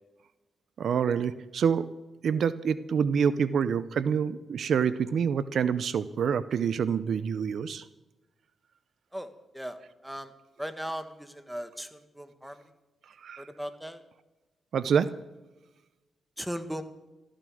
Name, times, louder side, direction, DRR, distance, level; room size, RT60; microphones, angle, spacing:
voice 1, 0.8-1.9 2.2-7.9 13.2-13.5 14.7-15.1, right 7 dB, 70° right, 15 dB, 0.6 m, -27 dB
voice 2, 9.1-10.3 10.6-12.6 13.4-14.0 16.4-16.8, equal, 5° right, 9 dB, 1.7 m, -38 dB
14.0 x 12.5 x 6.3 m, 1.1 s
cardioid pair, 70°, 0 cm